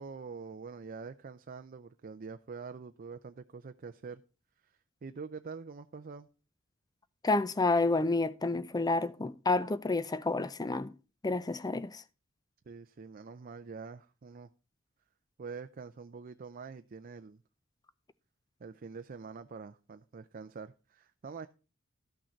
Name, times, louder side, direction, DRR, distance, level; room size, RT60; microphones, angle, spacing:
voice 1, 0.0-4.2 5.0-6.3 12.7-14.5 15.4-17.4 18.6-21.5, right 5 dB, 45° right, 0.5 m, -45 dB
voice 2, 7.2-10.9 11.2-12.0, left 3 dB, 20° left, 0.5 m, -29 dB
13.0 x 6.3 x 4.5 m
head